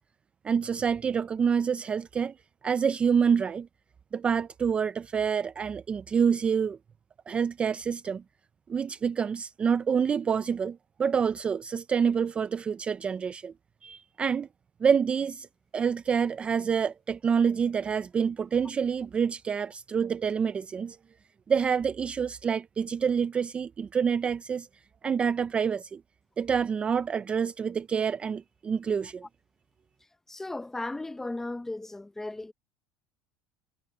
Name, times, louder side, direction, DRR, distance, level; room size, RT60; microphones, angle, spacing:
voice 1, 0.4-2.3 2.6-3.7 4.1-6.8 7.3-8.2 8.7-13.5 13.8-14.5 14.8-15.5 15.7-21.0 21.5-24.7 25.0-26.0 26.4-29.3, right 6 dB, 20° right, 0.4 m, -27 dB
voice 2, 30.3-32.5, left 2 dB, 5° left, 0.7 m, -36 dB
cardioid pair, 155°, 6 cm